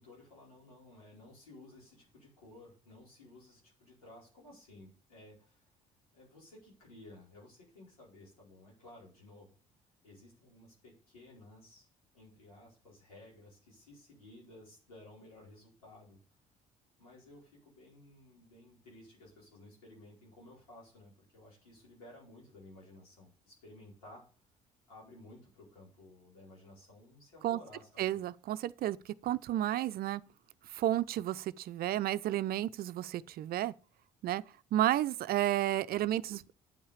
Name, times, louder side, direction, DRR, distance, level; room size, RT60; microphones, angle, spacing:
voice 1, 0.0-5.7 6.1-9.5 10.0-11.9 12.1-16.2 17.0-24.2 24.9-28.2, left 1 dB, 90° left, 4.7 m, -56 dB
voice 2, 28.0-30.2 30.7-33.7 34.2-34.4 34.7-36.5, right 13 dB, 55° right, 0.5 m, -32 dB
9.3 x 5.5 x 6.6 m
hypercardioid pair, 55°, 18 cm